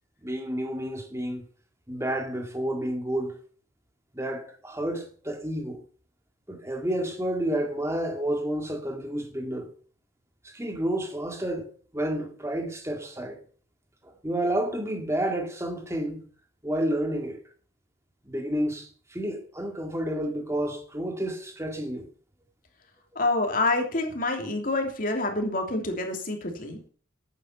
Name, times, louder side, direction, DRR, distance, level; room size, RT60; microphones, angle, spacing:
voice 1, 0.2-1.4 1.9-3.4 4.1-5.8 6.5-9.7 10.4-13.4 14.0-16.3 16.6-17.4 18.3-22.1, right 1 dB, 15° right, 2.1 m, -30 dB
voice 2, 23.1-26.8, left 2 dB, 45° left, 3.1 m, -27 dB
12.0 x 9.2 x 5.7 m
head